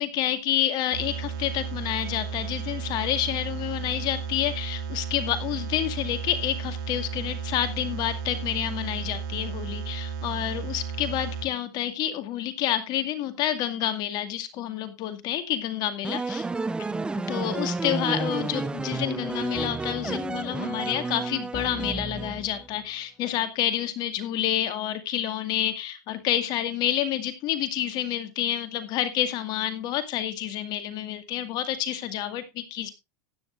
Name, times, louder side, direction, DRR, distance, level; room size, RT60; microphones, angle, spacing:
voice 1, 0.0-16.4 17.2-32.9, left 11 dB, 45° left, 9 dB, 2.2 m, -29 dB
sound 1, 0.9-11.5, right 6 dB, 70° right, 2.5 m, -34 dB
sound 2, 16.0-22.7, right 3 dB, 10° right, 0.6 m, -31 dB
15.5 x 10.0 x 2.6 m, 0.22 s
supercardioid pair, 120°, 10 cm